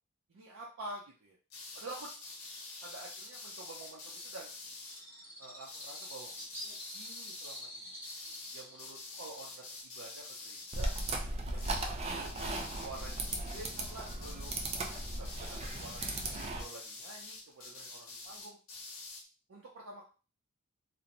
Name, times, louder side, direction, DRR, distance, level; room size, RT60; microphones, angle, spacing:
voice 1, 0.3-1.4 1.7-2.1 2.8-4.5 5.4-6.3 6.6-8.0 8.5-10.9 11.5-12.3 12.7-13.2 13.5-14.5 15.1-18.6 19.5-20.0, right 2 dB, 85° right, -2 dB, 0.5 m, -49 dB
sound 1, 1.5-5.0 5.6-7.6 8.0-11.2 11.5-11.9 12.2-19.2, left 3 dB, 80° left, 0.7 m, -47 dB
Bird, 4.1-11.4, equal, 10° right, 1.1 m, -49 dB
sound 2, 10.7-16.6, right 2 dB, 30° right, 0.3 m, -37 dB
2.5 x 2.1 x 2.9 m, 0.35 s
head